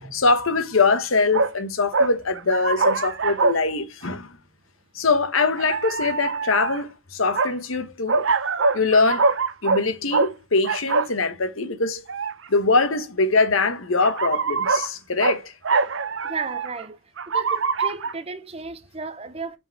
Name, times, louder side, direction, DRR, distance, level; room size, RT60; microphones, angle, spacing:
voice 1, 0.1-4.4 4.9-8.2 8.7-9.3 9.6-12.0 12.5-15.5, left 3 dB, 85° left, 1.2 m, -22 dB
sound 1, 1.3-1.5 1.9-3.6 4.0-4.1 5.4-6.8 7.3-7.5 8.1-9.9 10.1-10.3 10.6-11.1 12.1-12.5 13.4-13.5 14.0-14.9 15.2-15.4 15.6-16.8 17.2-18.1, right 4 dB, 65° right, 0.7 m, -23 dB
voice 2, 16.2-17.0 17.3-19.6, right 4 dB, 30° right, 0.7 m, -34 dB
7.8 x 4.5 x 4.8 m
head